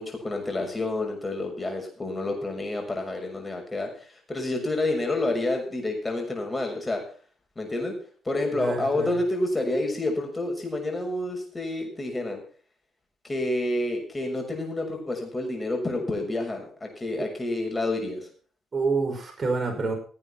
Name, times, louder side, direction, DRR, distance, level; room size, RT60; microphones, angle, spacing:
voice 1, 0.0-3.9 4.3-7.0 7.6-7.9 8.2-12.4 13.2-18.3, left 2 dB, 20° left, 2 dB, 6.6 m, -29 dB
voice 2, 8.5-9.2 17.2-17.3 18.7-20.0, right 4 dB, 35° right, 2 dB, 5.6 m, -28 dB
17.0 x 8.7 x 5.9 m, 0.43 s
cardioid pair, 90°, 0 cm